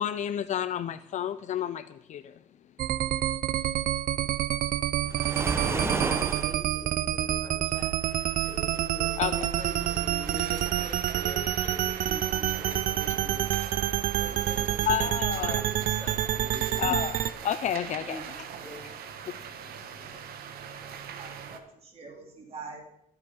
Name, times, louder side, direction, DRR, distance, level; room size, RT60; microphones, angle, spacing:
voice 1, 0.0-2.4 9.2-9.5 14.9-15.6 16.8-18.2 19.3-19.4, left 10 dB, 55° left, 0.5 m, -30 dB
sound 1, 2.8-17.3, right 12 dB, 70° right, 0.6 m, -28 dB
Waves surf, 5.1-6.6, right 2 dB, 15° right, 1.1 m, -30 dB
voice 2, 6.4-8.0 8.4-13.5 14.2-16.8 18.0-18.2 18.6-18.9, left 1 dB, 10° left, 6.8 m, -43 dB
sound 2, 8.0-21.6, right 8 dB, 90° right, 1.6 m, -42 dB
voice 3, 21.1-22.8, right 4 dB, 40° right, 3.1 m, -44 dB
24.0 x 8.1 x 5.4 m
cardioid pair, 155°, 15 cm